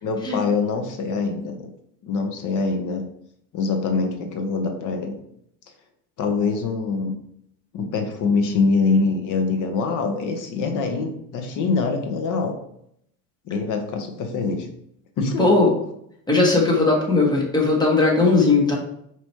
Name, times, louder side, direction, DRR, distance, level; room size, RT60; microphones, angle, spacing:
voice 1, 0.0-1.7 2.0-3.0 3.5-5.2 6.2-7.2 7.7-12.5 13.5-14.7 15.2-15.6, left 4 dB, 45° left, 4 dB, 1.0 m, -24 dB
voice 2, 15.4-15.7 16.3-18.8, left 3 dB, 10° left, -2 dB, 1.4 m, -18 dB
4.9 x 3.0 x 3.1 m, 0.71 s
supercardioid pair, 105°, 44 cm